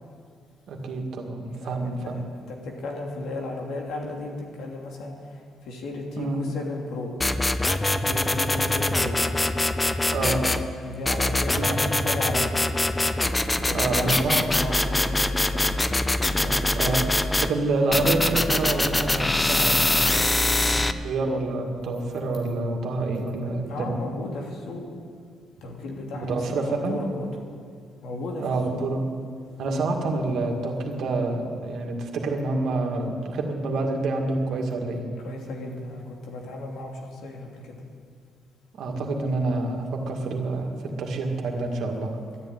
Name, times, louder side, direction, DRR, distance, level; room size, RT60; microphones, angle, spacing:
voice 1, 0.7-2.2 6.2-6.4 10.1-10.4 11.5-11.8 13.7-14.4 16.8-17.0 17.4-20.2 20.6-20.8 21.0-23.9 26.2-27.0 28.4-29.0 29.6-35.1 38.8-40.7 41.0-42.1, right 3 dB, 70° right, 2 dB, 2.2 m, -27 dB
voice 2, 1.6-2.2 2.5-5.1 5.6-7.1 7.8-9.2 10.8-12.6 13.6-15.8 16.2-17.1 23.7-24.8 25.6-27.3 28.0-28.8 35.2-37.7, left 2 dB, 80° left, 0 dB, 2.8 m, -34 dB
sound 1, 7.2-10.6 11.1-17.5 17.9-20.9, left 2 dB, 15° left, 0.7 m, -23 dB
12.0 x 10.5 x 9.2 m, 2.1 s
cardioid pair, 90°, 0 cm